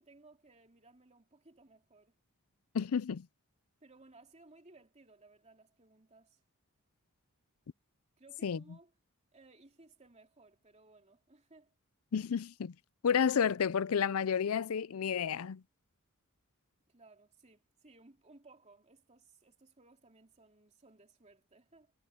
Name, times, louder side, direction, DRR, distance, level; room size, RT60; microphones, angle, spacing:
voice 1, 0.0-2.2 3.8-6.4 8.2-8.9 9.3-11.7 16.9-21.9, right 3 dB, 30° right, 3.1 m, -61 dB
voice 2, 2.7-3.3 8.4-8.6 12.1-12.7 13.0-15.6, left 7 dB, 70° left, 0.5 m, -31 dB
head